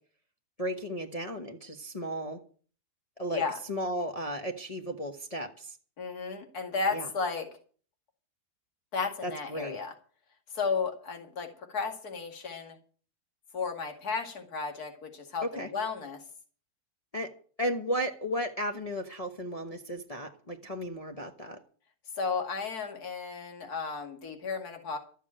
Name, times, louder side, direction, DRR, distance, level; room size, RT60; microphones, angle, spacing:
voice 1, 0.6-2.4 3.2-3.4 3.7-5.7 6.9-7.1 9.2-9.8 15.5-15.7 17.1-17.3 17.6-21.6, equal, 25° left, 3 dB, 1.0 m, -34 dB
voice 2, 6.0-7.5 8.9-9.9 10.5-12.8 13.5-16.2 22.2-25.0, left 5 dB, 65° left, 4 dB, 2.7 m, -33 dB
13.5 x 7.3 x 8.7 m, 0.43 s
omnidirectional pair, 1.8 m